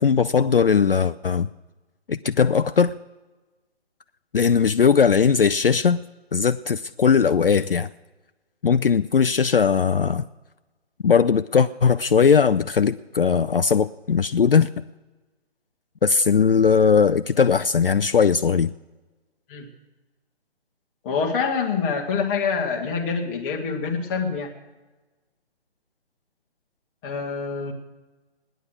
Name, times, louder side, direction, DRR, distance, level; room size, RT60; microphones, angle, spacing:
voice 1, 0.0-1.5 2.1-2.9 4.3-6.0 6.3-7.9 8.6-10.2 11.0-14.7 16.0-18.7, left 6 dB, 60° left, 0.5 m, -19 dB
voice 2, 21.0-24.5 27.0-27.7, left 5 dB, 10° left, 1.1 m, -26 dB
17.5 x 10.0 x 6.2 m
figure-of-eight pair, 145°, 33 cm